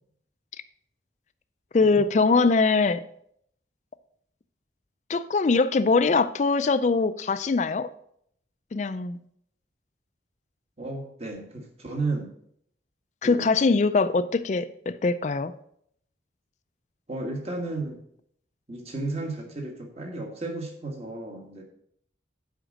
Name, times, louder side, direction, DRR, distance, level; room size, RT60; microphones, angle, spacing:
voice 1, 1.7-3.0 5.1-7.9 8.7-9.2 13.2-15.5, left 4 dB, 40° left, 0.4 m, -22 dB
voice 2, 10.8-12.3 13.2-13.5 17.1-18.0 18.7-21.6, right 2 dB, 35° right, 1.5 m, -33 dB
7.8 x 5.0 x 6.3 m
head